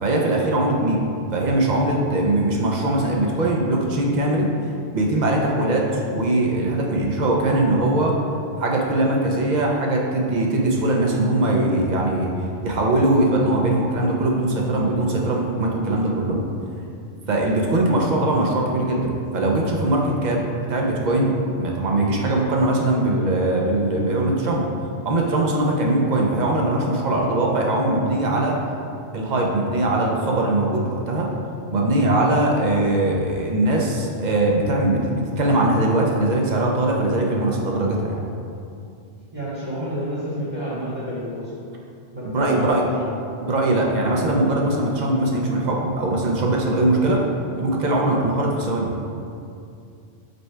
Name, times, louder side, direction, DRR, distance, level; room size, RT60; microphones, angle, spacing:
voice 1, 0.0-1.1 1.3-4.5 4.9-8.2 8.6-16.4 17.3-20.4 20.7-24.7 25.0-28.6 29.1-31.3 31.7-38.2 42.2-42.8 43.4-47.2 47.6-48.9, right 1 dB, 50° right, -1 dB, 0.6 m, -21 dB
voice 2, 39.3-41.5 42.1-43.1, right 1 dB, 25° right, -11 dB, 0.9 m, -28 dB
5.2 x 2.3 x 4.3 m, 2.5 s
omnidirectional pair, 1.1 m